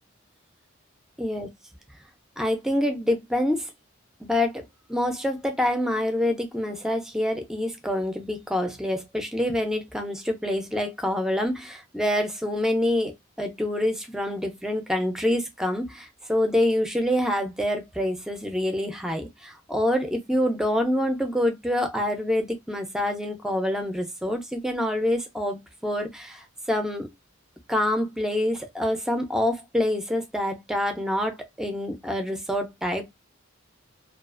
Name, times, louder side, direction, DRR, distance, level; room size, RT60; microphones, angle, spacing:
voice 1, 2.4-3.7 4.2-4.6 4.9-27.1 27.7-33.1, left 1 dB, 5° right, 0.4 m, -26 dB
2.3 x 2.3 x 2.4 m
head